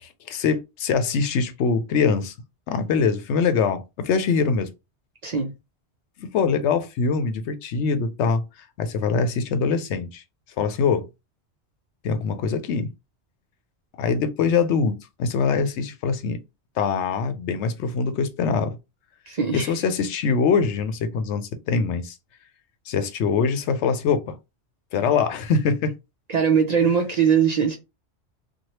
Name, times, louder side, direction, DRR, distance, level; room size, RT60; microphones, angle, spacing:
voice 1, 0.0-2.3 2.7-4.7 6.2-8.4 8.8-10.2 10.6-11.1 12.0-12.9 14.0-16.4 16.8-18.8 19.5-22.1 22.9-24.4 24.9-25.9, left 5 dB, 85° left, 0.9 m, -23 dB
voice 2, 5.2-5.5 19.3-19.7 26.3-27.8, right 7 dB, 55° right, 0.5 m, -21 dB
3.1 x 2.3 x 2.8 m
omnidirectional pair, 1.2 m